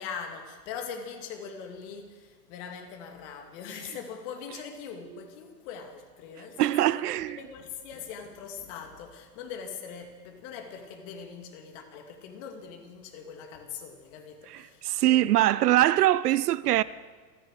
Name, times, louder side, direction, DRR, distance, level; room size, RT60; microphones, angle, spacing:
voice 1, 0.0-15.5 16.7-16.8, left 6 dB, 50° left, 2.5 m, -42 dB
voice 2, 6.6-7.4 14.5-16.8, right 14 dB, 70° right, 0.6 m, -23 dB
27.5 x 10.0 x 4.9 m
hypercardioid pair, 100°, 48 cm